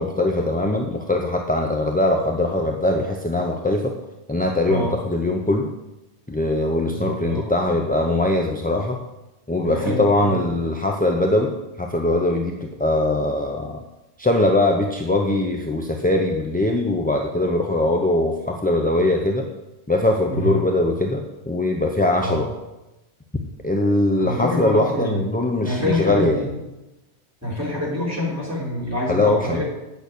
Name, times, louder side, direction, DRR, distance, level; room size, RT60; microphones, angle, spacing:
voice 1, 0.0-4.0 4.3-5.7 6.3-9.0 9.5-13.8 14.2-19.5 19.9-22.5 23.6-26.5 29.1-29.6, left 1 dB, 10° left, 2 dB, 0.6 m, -21 dB
voice 2, 6.9-7.5 9.6-10.4 20.3-20.6 22.2-22.4 24.2-25.3 25.6-26.5 27.4-29.6, left 1 dB, 15° right, -5 dB, 3.6 m, -26 dB
9.1 x 6.2 x 8.3 m, 1.0 s
omnidirectional pair, 1.2 m